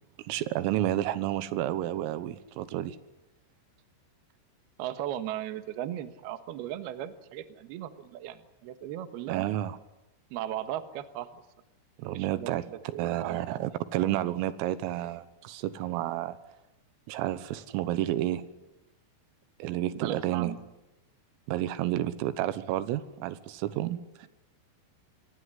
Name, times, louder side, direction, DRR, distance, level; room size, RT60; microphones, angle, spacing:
voice 1, 0.3-3.0 9.3-9.8 12.0-12.7 13.0-16.4 17.1-18.4 19.6-20.5 21.5-24.3, right 13 dB, 85° right, 14 dB, 3.8 m, -30 dB
voice 2, 4.8-9.5 10.3-11.4 12.0-12.6 12.9-13.7 19.9-20.6, right 12 dB, 65° right, 10 dB, 2.8 m, -37 dB
26.5 x 19.5 x 9.9 m, 0.95 s
omnidirectional pair, 5.8 m